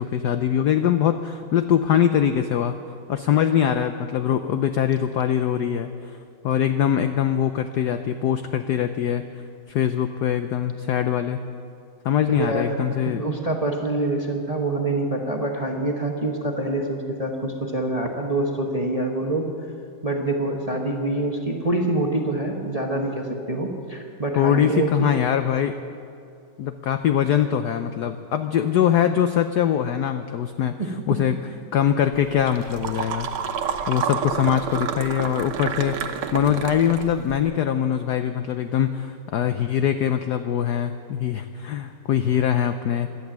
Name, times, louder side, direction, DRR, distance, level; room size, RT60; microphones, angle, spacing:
voice 1, 0.0-2.8 3.1-5.9 6.4-9.2 9.7-11.4 12.0-13.2 24.4-25.8 26.6-30.8 31.1-31.4 31.7-33.3 33.9-36.0 36.3-43.1, left 9 dB, 80° left, 9 dB, 0.9 m, -22 dB
voice 2, 12.2-19.5 20.0-25.1 30.8-30.9, right 2 dB, 25° right, 1 dB, 0.8 m, -26 dB
sound 1, 32.1-37.4, right 7 dB, 75° right, 1.8 m, -30 dB
17.0 x 12.0 x 7.3 m, 2.5 s
omnidirectional pair, 2.4 m